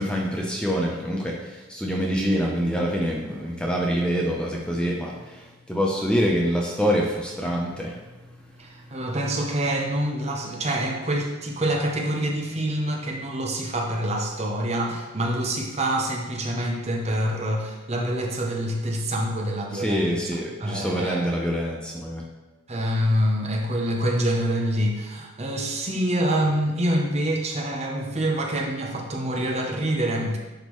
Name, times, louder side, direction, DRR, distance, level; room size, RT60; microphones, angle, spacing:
voice 1, 0.0-9.0 19.7-22.2, equal, 5° left, -2 dB, 0.6 m, -26 dB
voice 2, 8.6-20.2 20.6-21.3 22.7-30.4, right 1 dB, 30° right, 0 dB, 0.7 m, -26 dB
10.5 x 3.7 x 3.1 m, 1.2 s
head